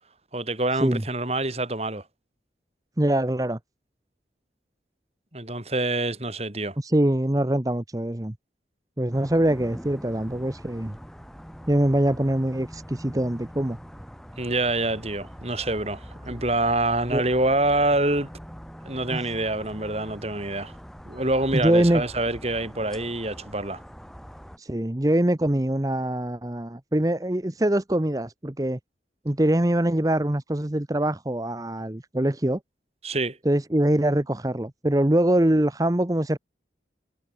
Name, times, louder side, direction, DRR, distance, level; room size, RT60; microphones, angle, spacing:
voice 1, 0.3-2.0 5.3-6.8 14.4-18.3 18.8-20.7 21.0-23.8 33.0-33.4, right 2 dB, 35° right, 4.7 m, -26 dB
voice 2, 3.0-3.6 6.8-8.3 9.0-11.0 11.7-13.8 17.1-17.2 19.1-19.3 21.5-22.0 24.6-28.8 29.2-32.6 33.4-36.4, right 1 dB, 20° right, 0.9 m, -23 dB
sound 1, 9.1-24.6, equal, ahead, 3.9 m, -43 dB
head